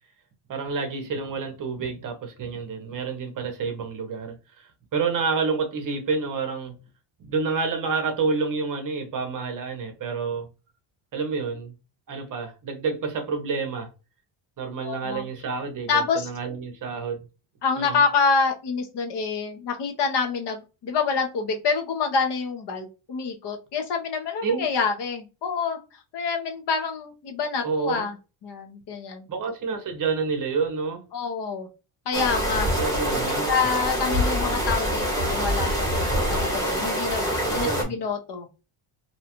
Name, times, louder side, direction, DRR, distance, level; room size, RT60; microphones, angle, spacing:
voice 1, 0.5-6.8 7.2-10.5 11.1-11.7 12.1-13.9 14.6-17.2 17.8-18.0 24.4-24.7 27.6-28.0 29.3-31.0 32.8-33.5 37.5-37.9, right 4 dB, 40° right, 0.7 m, -28 dB
voice 2, 14.8-15.2 15.9-16.3 17.6-25.8 26.1-28.2 28.4-29.3 31.1-31.7 32.1-32.7 33.5-38.6, left 5 dB, 55° left, 0.8 m, -27 dB
sound 1, 32.1-37.8, equal, 5° left, 1.1 m, -25 dB
2.8 x 2.3 x 2.8 m
cardioid pair, 170°, 49 cm